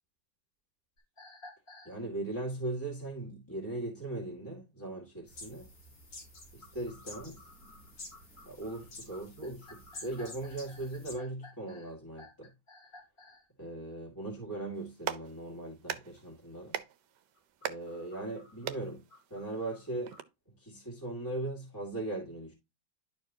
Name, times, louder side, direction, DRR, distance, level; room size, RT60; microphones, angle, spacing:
sound 1, 1.0-2.0 6.3-13.5 17.3-20.2, left 2 dB, 40° left, 3.0 m, -55 dB
voice 1, 1.9-5.7 6.5-7.4 8.5-12.5 13.6-16.8 17.7-19.0 19.3-20.1 20.6-22.5, right 2 dB, 10° left, 2.1 m, -39 dB
sound 2, 5.3-11.1, left 2 dB, 90° left, 3.8 m, -50 dB
Clapping, 14.7-20.2, right 10 dB, 70° right, 1.3 m, -42 dB
11.5 x 4.6 x 2.8 m
omnidirectional pair, 2.0 m